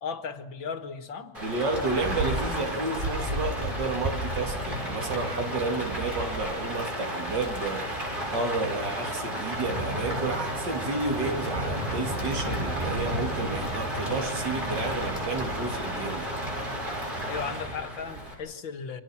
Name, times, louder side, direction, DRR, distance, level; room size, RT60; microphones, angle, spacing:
voice 1, 0.0-1.3 17.2-19.0, left 6 dB, 80° left, 2.4 m, -36 dB
Rain, 1.3-18.3, right 1 dB, 25° right, 7.0 m, -32 dB
voice 2, 1.4-8.0 8.3-16.4, right 3 dB, 65° right, 3.3 m, -31 dB
29.0 x 25.0 x 6.0 m
omnidirectional pair, 2.1 m